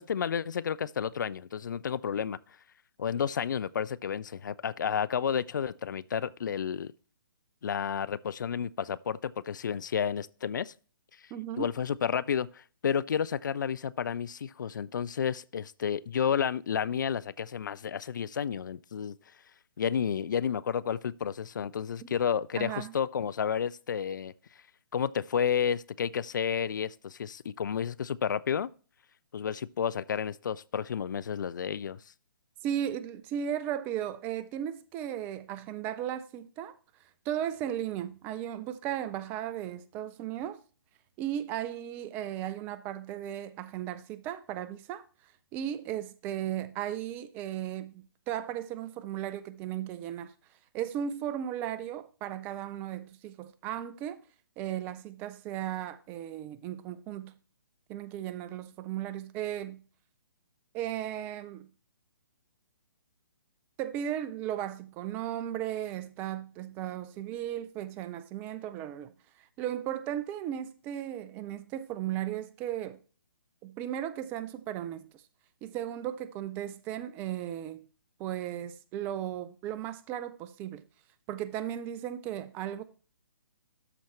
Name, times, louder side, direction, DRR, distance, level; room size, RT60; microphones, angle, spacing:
voice 1, 0.0-2.4 3.0-6.9 7.6-10.7 11.6-19.1 19.8-24.3 24.9-28.7 29.3-32.0, left 7 dB, 55° left, 0.4 m, -31 dB
voice 2, 11.3-11.7 22.5-22.9 32.6-36.8 37.3-40.6 41.2-45.0 45.5-50.3 50.7-54.2 54.6-57.3 57.9-59.8 60.7-61.7 63.8-69.1 69.4-73.0 73.6-75.2 75.6-77.9 78.2-80.8 81.3-82.8, right 11 dB, 15° right, 0.3 m, -36 dB
13.0 x 4.3 x 3.0 m
figure-of-eight pair, 130°, 12 cm